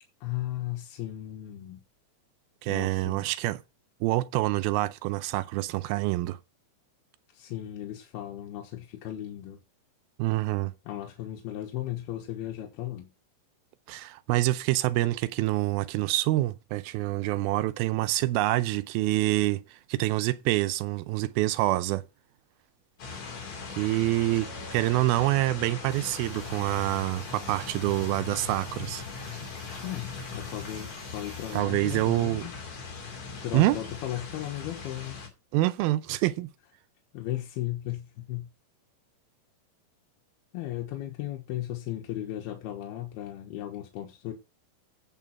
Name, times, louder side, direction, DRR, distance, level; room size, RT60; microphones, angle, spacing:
voice 1, 0.2-1.8 2.7-3.3 7.3-9.6 10.9-13.1 29.8-32.5 33.4-35.2 37.1-38.5 40.5-44.3, left 13 dB, 85° left, 3.2 m, -36 dB
voice 2, 2.6-3.6 4.0-6.4 10.2-10.7 13.9-22.0 23.7-29.0 31.5-32.4 33.5-33.8 35.5-36.5, right 17 dB, 80° right, 2.5 m, -26 dB
sound 1, 23.0-35.3, left 5 dB, 50° left, 3.9 m, -40 dB
sound 2, 25.9-31.6, right 4 dB, 35° right, 1.4 m, -52 dB
9.2 x 7.3 x 5.9 m
omnidirectional pair, 4.4 m